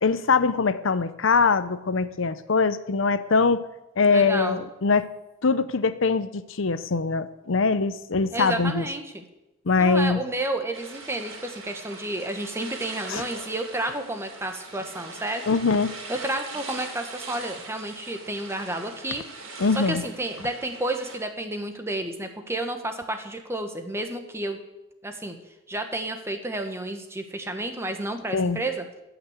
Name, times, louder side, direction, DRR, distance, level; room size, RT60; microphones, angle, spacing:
voice 1, 0.0-3.7 4.0-5.1 5.4-8.8 9.7-10.2 13.1-13.2 15.5-15.9 19.6-20.0 28.3-28.6, left 4 dB, 70° left, 13 dB, 0.7 m, -22 dB
voice 2, 4.1-4.6 8.3-9.2 9.8-15.4 16.1-19.2 19.8-24.6 25.0-25.4 25.7-28.8, right 1 dB, 15° right, 6 dB, 1.2 m, -31 dB
sound 1, 10.7-21.2, right 3 dB, 85° right, 2.9 m, -41 dB
16.0 x 6.0 x 8.0 m, 0.95 s
head